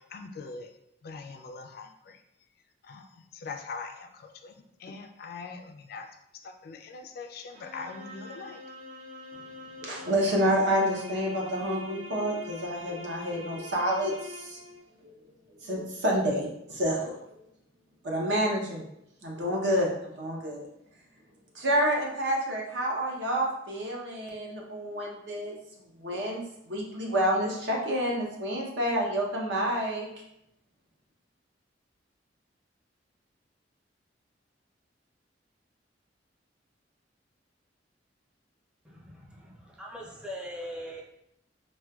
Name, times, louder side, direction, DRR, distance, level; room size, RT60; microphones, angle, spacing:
voice 1, 0.1-0.7 1.0-1.9 2.9-3.0 3.4-4.1 4.4-4.5 4.8-5.6 5.9-6.0 6.6-8.6, left 4 dB, 55° left, 5 dB, 0.3 m, -41 dB
sound 1, 7.5-14.8, left 3 dB, 80° right, 1.2 m, -44 dB
voice 2, 9.8-14.6 15.0-15.1 15.6-17.2 18.0-18.9 19.2-20.6 21.5-25.6 26.0-30.1, equal, 65° right, -2 dB, 0.8 m, -28 dB
voice 3, 38.8-41.0, equal, 5° right, -4 dB, 0.5 m, -41 dB
4.3 x 2.2 x 2.3 m, 0.78 s
head